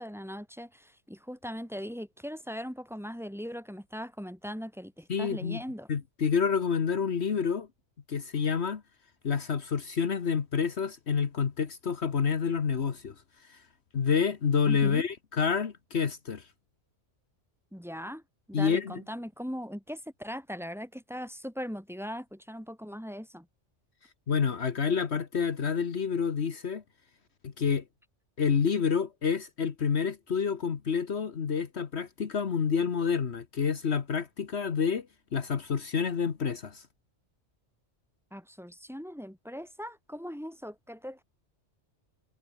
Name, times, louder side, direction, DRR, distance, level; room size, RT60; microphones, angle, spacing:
voice 1, 0.0-5.9 14.7-15.0 17.7-18.2 18.5-23.5 38.3-41.2, equal, ahead, 4.0 m, -39 dB
voice 2, 5.1-5.6 5.9-7.7 8.1-8.8 9.2-13.1 13.5-13.6 13.9-16.5 18.5-19.0 24.3-26.8 27.4-27.8 28.4-35.1 35.3-36.8, left 6 dB, 65° left, 1.5 m, -28 dB
omnidirectional pair, 1.2 m